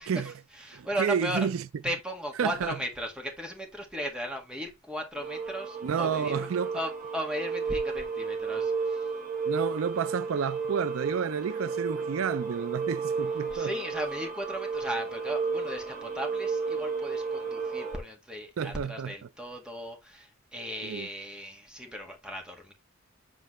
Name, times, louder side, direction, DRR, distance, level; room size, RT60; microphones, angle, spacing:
voice 1, 0.0-1.5 1.8-6.5 6.7-9.1 13.5-22.7, equal, 5° right, 1.7 m, -36 dB
voice 2, 0.7-1.6 2.4-2.8 5.8-6.8 9.5-13.7 18.6-19.1 20.8-21.1, right 7 dB, 75° right, 0.4 m, -30 dB
sound 1, 5.1-18.0, right 5 dB, 45° right, 3.4 m, -33 dB
7.8 x 4.6 x 3.1 m
head